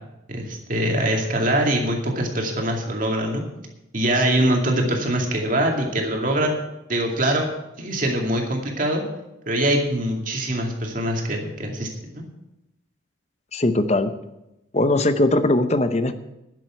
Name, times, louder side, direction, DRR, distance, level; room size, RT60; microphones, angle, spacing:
voice 1, 0.3-3.4 3.9-6.6 6.9-7.5 7.8-9.0 9.5-12.2, right 1 dB, 40° right, 1 dB, 2.4 m, -23 dB
voice 2, 13.5-14.1 14.7-16.1, left 2 dB, 35° left, 10 dB, 0.8 m, -20 dB
11.0 x 7.5 x 9.1 m, 0.93 s
head